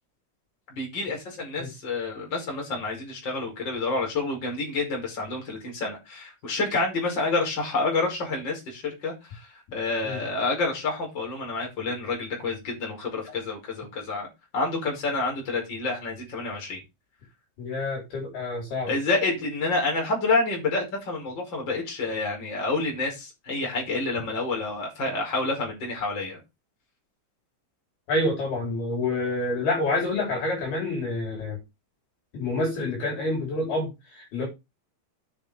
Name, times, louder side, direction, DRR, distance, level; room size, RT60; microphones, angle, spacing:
voice 1, 0.7-14.3 14.5-16.8 18.9-26.4, left 3 dB, 20° left, 5.2 m, -28 dB
voice 2, 17.6-18.9 28.1-31.6 32.3-34.5, left 2 dB, 50° left, 5.7 m, -28 dB
9.3 x 7.1 x 5.1 m
omnidirectional pair, 6.0 m